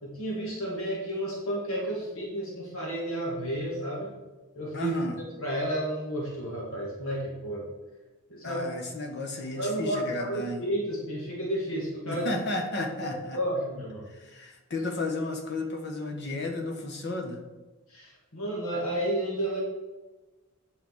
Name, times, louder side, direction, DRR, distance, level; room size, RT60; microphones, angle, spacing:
voice 1, 0.0-4.1 4.5-4.9 5.4-7.7 8.3-8.6 9.5-12.2 13.0-14.1 17.9-19.6, right 1 dB, 70° left, -3 dB, 2.2 m, -32 dB
voice 2, 4.7-5.2 8.4-10.7 12.1-13.4 14.1-17.4, left 2 dB, 50° left, 3 dB, 1.5 m, -33 dB
9.2 x 6.3 x 5.1 m, 1.2 s
head